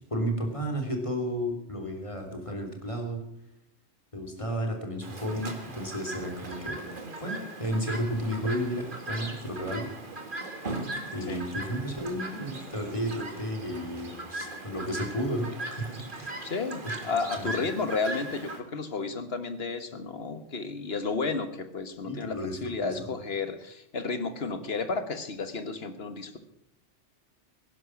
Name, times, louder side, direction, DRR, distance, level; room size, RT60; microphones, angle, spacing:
voice 1, 0.1-3.2 4.1-6.8 7.2-9.9 11.1-16.5 16.8-16.9 17.4-17.6 22.0-23.1, equal, 25° left, 3 dB, 3.3 m, -33 dB
Chirp tweet, 5.0-18.6, right 2 dB, 45° right, 2.2 m, -39 dB
voice 2, 16.4-22.3 22.6-26.4, left 4 dB, 55° left, 10 dB, 1.7 m, -32 dB
18.0 x 11.0 x 6.1 m, 0.79 s
omnidirectional pair, 1.2 m